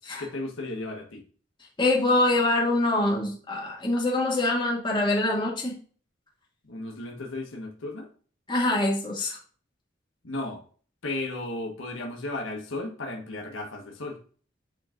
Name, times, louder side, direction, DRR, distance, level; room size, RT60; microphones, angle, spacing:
voice 1, 0.2-1.2 6.6-8.1 10.2-10.6 11.0-14.2, left 2 dB, 75° left, 1 dB, 1.4 m, -34 dB
voice 2, 1.8-5.8 8.5-9.4, left 2 dB, 25° left, -2 dB, 2.1 m, -24 dB
8.6 x 4.4 x 2.5 m, 0.41 s
head